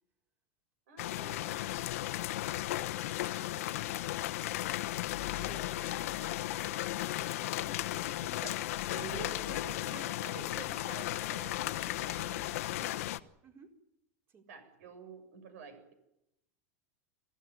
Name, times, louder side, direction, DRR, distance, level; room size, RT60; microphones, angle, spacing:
voice 1, 0.9-4.0 8.2-8.7 8.9-13.0 14.5-15.9, right 5 dB, 75° right, 10 dB, 6.9 m, -50 dB
sound 1, 1.0-13.2, left 15 dB, 75° left, 1.1 m, -35 dB
voice 2, 5.3-8.2 13.4-13.7 14.3-14.5, right 6 dB, 30° right, 4 dB, 4.2 m, -56 dB
24.5 x 16.0 x 9.7 m, 0.85 s
supercardioid pair, 140°, 8 cm